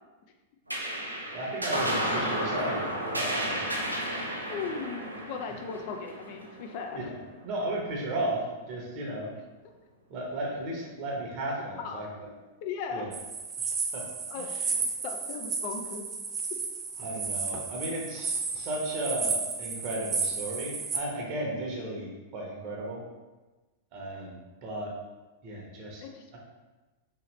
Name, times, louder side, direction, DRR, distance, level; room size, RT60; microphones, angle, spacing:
sound 1, 0.7-7.5, equal, 90° right, 0.5 m, -33 dB
voice 1, 1.3-3.6 6.9-7.2 7.4-9.3 10.1-12.3 12.9-13.1 13.6-14.0 14.4-14.7 17.0-23.0 23.9-24.9 25.4-26.0, right 1 dB, 40° right, -2 dB, 0.9 m, -35 dB
voice 2, 4.3-7.1 11.8-12.0 12.6-13.1 14.3-14.5 15.0-16.1 26.0-26.4, left 5 dB, 45° left, 4 dB, 0.4 m, -37 dB
sound 2, 13.1-21.0, right 4 dB, 25° right, 0.4 m, -33 dB
3.1 x 2.8 x 3.0 m, 1.2 s
figure-of-eight pair, 95°, 0 cm